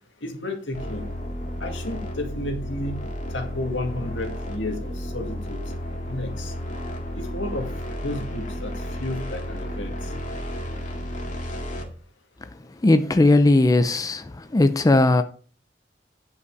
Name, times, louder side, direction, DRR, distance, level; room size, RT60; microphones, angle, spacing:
voice 1, 0.2-1.0 1.6-3.0 3.3-5.6 6.1-6.5 7.2-7.7 8.0-8.7 9.0-10.0, left 1 dB, 80° left, 2.0 m, -32 dB
sound 1, 0.7-11.8, equal, 45° left, 2.0 m, -32 dB
voice 2, 12.8-15.2, left 2 dB, 20° left, 0.5 m, -18 dB
9.7 x 5.5 x 4.7 m
head